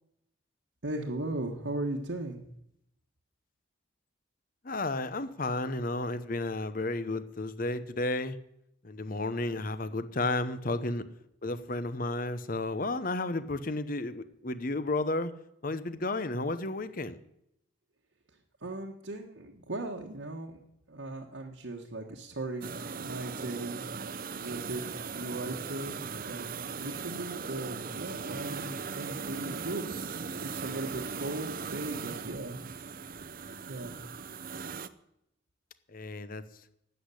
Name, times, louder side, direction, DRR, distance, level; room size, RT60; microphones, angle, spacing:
voice 1, 0.8-2.4 18.6-20.6 20.9-23.8 24.2-24.8 25.1-32.6 33.7-33.9, right 2 dB, 75° right, -1 dB, 1.5 m, -38 dB
voice 2, 4.6-8.4 8.8-11.0 11.4-15.3 15.6-17.2 35.9-36.4, left 2 dB, 45° left, 13 dB, 0.8 m, -32 dB
sound 1, 22.6-34.9, right 5 dB, 45° right, 0.6 m, -39 dB
12.5 x 8.3 x 9.9 m, 0.79 s
head